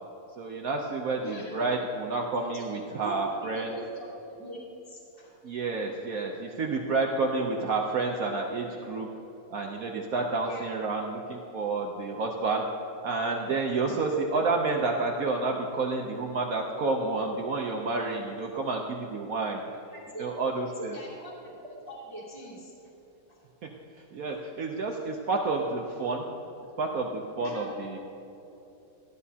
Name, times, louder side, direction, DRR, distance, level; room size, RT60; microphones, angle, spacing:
voice 1, 0.4-3.7 5.4-9.1 9.5-12.6 13.0-19.6 20.2-21.0 23.6-23.7 24.1-26.3 26.8-28.0, right 3 dB, 75° right, 1 dB, 0.8 m, -30 dB
voice 2, 2.4-3.3 3.5-4.1 4.4-5.4 10.4-10.6 19.9-20.2 20.8-22.9 23.3-23.5 27.4-27.8, right 1 dB, 20° right, -8 dB, 1.9 m, -42 dB
15.0 x 11.5 x 2.8 m, 3.0 s
omnidirectional pair, 2.3 m